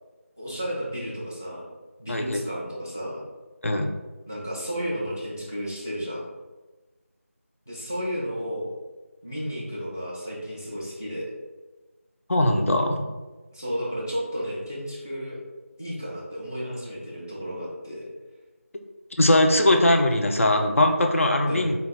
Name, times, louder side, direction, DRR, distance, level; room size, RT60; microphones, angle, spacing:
voice 1, 0.4-1.7 2.0-3.3 4.3-6.2 7.7-8.7 9.2-11.3 13.5-15.4 15.8-18.1 21.5-21.7, equal, 10° left, -6 dB, 0.4 m, -32 dB
voice 2, 2.1-2.4 3.6-3.9 12.3-13.0 19.2-21.8, left 1 dB, 65° left, 3 dB, 0.6 m, -20 dB
4.2 x 2.3 x 4.0 m, 1.2 s
figure-of-eight pair, 175°, 8 cm